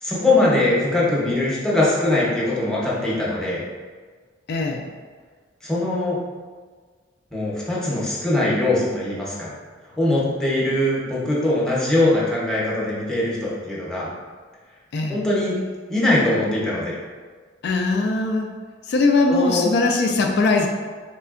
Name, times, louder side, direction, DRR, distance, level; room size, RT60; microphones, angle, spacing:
voice 1, 0.0-3.6 5.6-6.2 7.3-9.5 10.0-14.1 15.1-15.6 15.9-16.9 19.3-19.7, left 2 dB, 5° left, -7 dB, 0.8 m, -21 dB
voice 2, 4.5-4.8 14.9-15.2 17.6-18.5 18.9-20.7, left 3 dB, 60° left, 2 dB, 0.3 m, -20 dB
3.7 x 3.2 x 2.4 m, 1.5 s
head